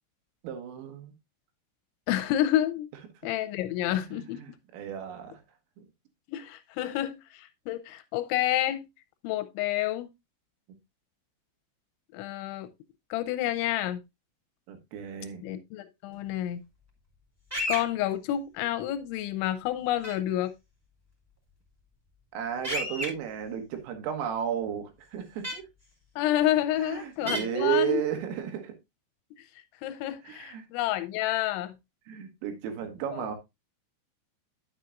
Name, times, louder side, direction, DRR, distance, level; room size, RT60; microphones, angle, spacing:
voice 1, 0.4-1.1 4.1-5.4 5.8-5.9 14.7-15.5 22.3-25.7 26.8-28.8 30.3-30.7 32.1-33.4, right 9 dB, 85° right, 4.1 m, -33 dB
voice 2, 2.1-2.9 3.2-4.4 6.3-8.9 9.2-10.1 12.1-12.7 13.1-14.0 15.4-16.6 17.7-20.5 26.2-28.0 29.8-31.8 33.1-33.3, left 13 dB, 85° left, 2.7 m, -29 dB
sound 1, 17.5-17.8 20.0-20.1 22.6-23.1 25.4-25.5 27.3-27.4, equal, 10° right, 0.8 m, -30 dB
10.0 x 8.1 x 2.5 m
omnidirectional pair, 5.8 m